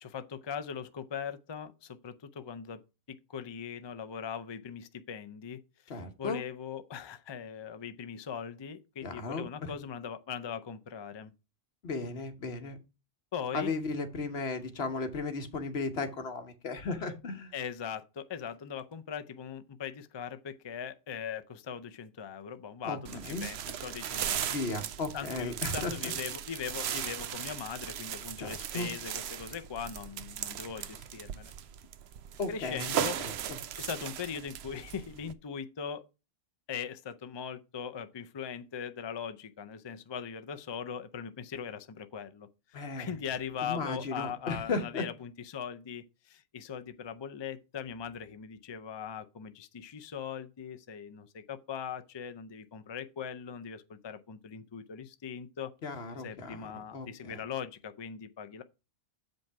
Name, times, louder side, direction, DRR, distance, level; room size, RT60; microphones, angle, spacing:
voice 1, 0.0-2.8 3.1-5.6 6.2-11.3 13.3-13.7 17.5-24.4 25.1-31.5 32.5-33.2 33.8-36.0 36.7-55.7 56.2-58.6, left 7 dB, 35° left, 0.4 m, -40 dB
voice 2, 5.9-6.4 9.0-9.7 11.8-12.8 13.5-17.5 22.8-23.5 24.5-25.9 28.4-28.9 32.4-33.6 42.7-43.1 43.6-45.1 55.8-57.4, left 3 dB, 75° left, 1.4 m, -36 dB
sound 1, 23.1-35.3, right 9 dB, 80° right, 0.9 m, -37 dB
7.2 x 5.3 x 4.6 m
omnidirectional pair, 1.1 m